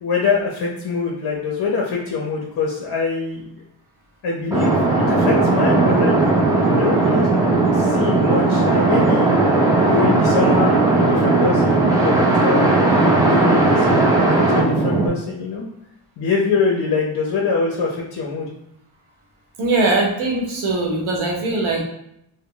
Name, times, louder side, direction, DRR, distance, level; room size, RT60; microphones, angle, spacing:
voice 1, 0.0-3.5 4.2-6.2 6.8-7.3 7.7-9.3 9.9-15.7 16.2-18.5, left 4 dB, 55° left, -2 dB, 0.6 m, -24 dB
sound 1, 4.5-15.1, right 2 dB, 5° right, 0.4 m, -17 dB
voice 2, 19.6-21.8, right 2 dB, 75° right, -1 dB, 0.9 m, -21 dB
2.1 x 2.0 x 3.7 m, 0.77 s
cardioid pair, 120°, 48 cm